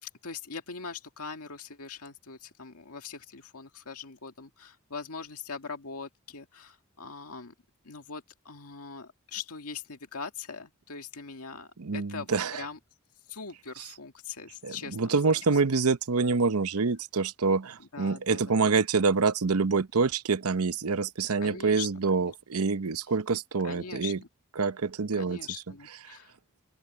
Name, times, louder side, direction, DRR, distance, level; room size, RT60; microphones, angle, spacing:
voice 1, 0.0-7.5 7.8-12.8 13.3-15.4 17.8-18.6 21.4-21.9 22.1-22.4 23.6-24.3 25.2-26.3, left 5 dB, 90° left, 1.9 m, -42 dB
voice 2, 11.8-12.6 13.8-13.9 14.6-24.2 24.6-25.4 26.1-26.2, right 4 dB, 75° right, 0.8 m, -26 dB
open air
head